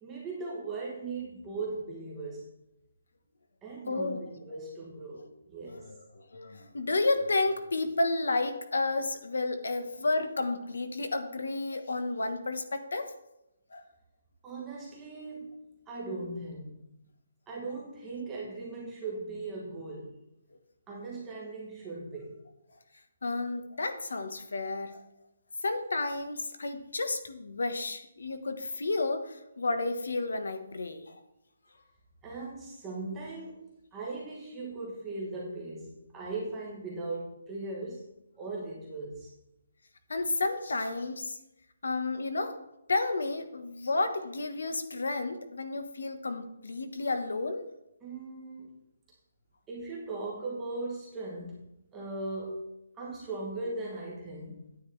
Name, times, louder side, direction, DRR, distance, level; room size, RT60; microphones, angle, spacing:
voice 1, 0.0-2.5 3.6-5.9 14.4-16.8 17.5-20.2 20.9-22.4 32.2-33.7 33.9-38.1 38.4-39.3 48.0-48.7 49.7-54.8, right 3 dB, 10° right, -5 dB, 1.1 m, -39 dB
voice 2, 3.9-4.2 5.7-13.1 13.7-13.8 23.2-25.0 25.6-31.2 40.1-41.4 41.8-42.6 42.9-47.7, left 3 dB, 80° left, 8 dB, 1.2 m, -31 dB
9.9 x 9.3 x 3.3 m, 0.89 s
hypercardioid pair, 175°, 0 cm